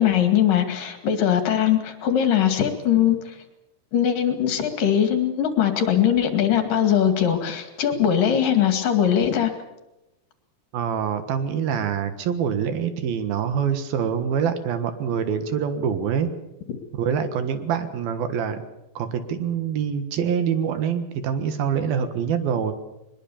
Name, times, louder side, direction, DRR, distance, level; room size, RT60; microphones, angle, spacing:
voice 1, 0.0-3.4 3.9-9.5, left 9 dB, 65° left, 6 dB, 3.7 m, -21 dB
voice 2, 10.7-16.3 16.9-18.6 19.0-22.7, right 7 dB, 75° right, 9 dB, 3.4 m, -25 dB
22.0 x 21.0 x 7.1 m, 0.94 s
omnidirectional pair, 4.3 m